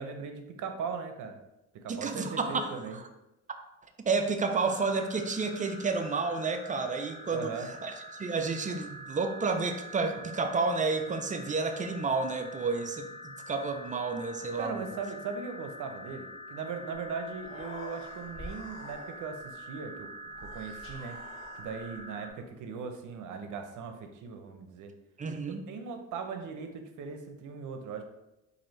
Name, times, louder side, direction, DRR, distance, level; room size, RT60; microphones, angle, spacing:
voice 1, 0.0-1.4 1.8-3.0 7.3-7.7 14.6-21.2 21.6-24.9 25.7-28.0, right 5 dB, 70° right, 6 dB, 0.7 m, -39 dB
voice 2, 1.9-2.7 4.1-7.5 7.8-14.9 25.2-25.6, right 4 dB, 25° right, 7 dB, 0.4 m, -30 dB
sound 1, 4.4-22.3, left 1 dB, 20° left, 0.8 m, -46 dB
Human voice, 17.0-17.1 17.3-19.4 20.3-22.0, left 2 dB, 40° left, 1.0 m, -47 dB
4.2 x 2.6 x 3.1 m, 0.93 s
cardioid pair, 95°, 32 cm